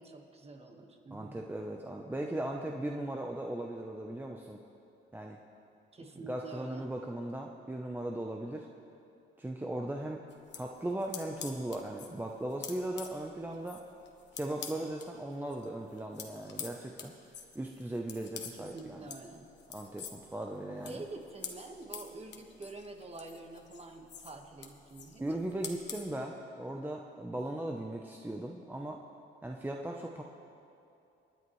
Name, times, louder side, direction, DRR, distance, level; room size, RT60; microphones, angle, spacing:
voice 1, 0.0-1.5 5.9-6.9 18.5-19.5 20.9-25.2, right 2 dB, 30° right, 3 dB, 1.5 m, -47 dB
voice 2, 1.1-4.6 5.1-5.4 6.2-8.7 9.4-10.2 10.5-13.8 14.3-17.1 17.5-19.1 19.7-21.0 25.2-29.0 29.4-30.2, right 1 dB, 10° right, 1 dB, 0.7 m, -38 dB
sound 1, 10.3-15.1 15.4-26.1, left 7 dB, 60° left, 1.3 m, -47 dB
27.0 x 9.8 x 3.2 m, 2.7 s
cardioid pair, 90°, 20 cm